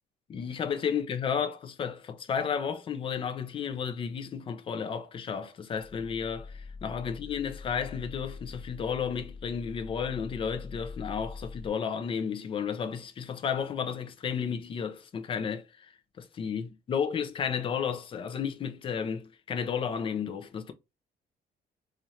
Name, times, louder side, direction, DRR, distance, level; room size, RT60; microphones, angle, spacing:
voice 1, 0.3-20.7, left 7 dB, 35° left, 0.5 m, -33 dB
sound 1, 5.7-11.7, left 4 dB, 10° right, 0.7 m, -44 dB
4.3 x 2.5 x 3.1 m
cardioid pair, 180°, 17 cm